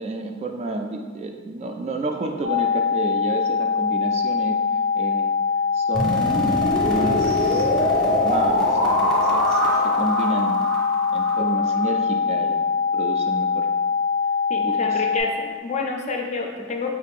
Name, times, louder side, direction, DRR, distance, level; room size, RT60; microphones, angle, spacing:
voice 1, 0.0-4.6 4.9-5.3 5.7-6.2 6.9-7.7 8.2-10.7 11.1-13.7 14.6-14.8, right 2 dB, 30° right, 3 dB, 0.3 m, -30 dB
sound 1, 2.4-15.2, left 6 dB, 85° right, 0.7 m, -23 dB
sound 2, 5.9-11.9, equal, ahead, 0.7 m, -24 dB
voice 2, 14.5-16.9, left 4 dB, 35° left, 2 dB, 0.4 m, -28 dB
4.7 x 2.5 x 3.5 m, 1.5 s
head